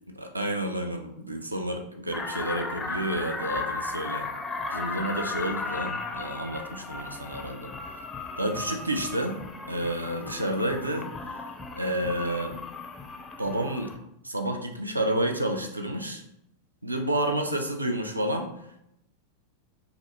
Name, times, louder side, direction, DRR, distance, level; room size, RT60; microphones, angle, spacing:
voice 1, 0.1-4.3 4.7-7.7 8.4-9.4 9.7-11.1 11.8-12.5 13.4-13.9 14.2-16.2 16.8-18.5, right 1 dB, 85° right, 4 dB, 0.4 m, -30 dB
sound 1, 2.1-14.0, left 3 dB, 15° left, 0.4 m, -36 dB
4.0 x 2.4 x 2.8 m, 0.79 s
figure-of-eight pair, 90°, 0 cm